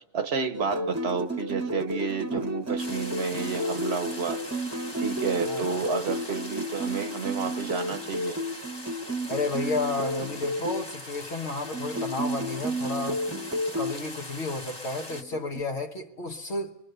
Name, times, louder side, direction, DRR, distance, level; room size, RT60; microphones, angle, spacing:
voice 1, 0.1-4.4 5.0-8.4 13.3-13.4, right 5 dB, 85° right, 1.3 m, -31 dB
sound 1, 0.5-10.8 11.6-13.9 15.1-15.6, equal, 15° right, 0.7 m, -32 dB
sound 2, 2.8-15.2, left 2 dB, 25° left, 1.4 m, -41 dB
voice 2, 5.4-5.8 9.3-13.3 13.8-16.8, left 3 dB, 85° left, 1.5 m, -32 dB
24.0 x 21.0 x 6.8 m
omnidirectional pair, 1.1 m